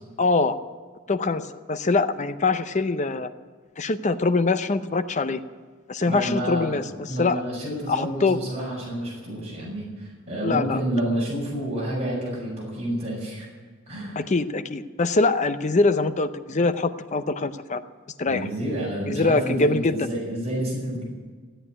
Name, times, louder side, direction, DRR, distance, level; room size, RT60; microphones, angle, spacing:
voice 1, 0.2-0.5 1.1-3.3 3.8-5.4 5.9-6.8 7.2-7.4 7.9-8.4 10.4-10.8 14.2-17.8 18.2-18.5 19.1-20.1, left 3 dB, 30° left, 11 dB, 0.6 m, -23 dB
voice 2, 6.0-6.8 7.1-13.5 13.9-14.2 18.3-21.0, right 1 dB, 30° right, -5 dB, 5.9 m, -29 dB
16.0 x 9.0 x 9.9 m, 1.5 s
head